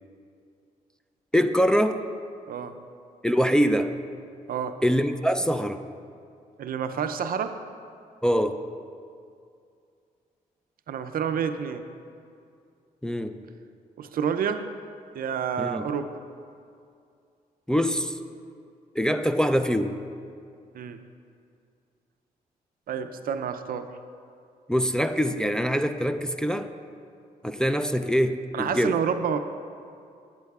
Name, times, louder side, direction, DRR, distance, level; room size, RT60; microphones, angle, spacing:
voice 1, 1.3-2.0 3.2-3.9 4.8-5.8 8.2-8.6 13.0-13.4 15.6-15.8 17.7-18.2 18.9-20.0 24.7-26.7 27.4-29.0, equal, 5° left, 7 dB, 0.4 m, -24 dB
voice 2, 6.6-7.5 10.9-11.8 14.0-14.6 15.1-16.1 20.7-21.0 22.9-23.9 28.5-29.4, right 7 dB, 70° right, 9 dB, 0.5 m, -29 dB
12.5 x 8.8 x 2.3 m, 2.4 s
cardioid pair, 75°, 16 cm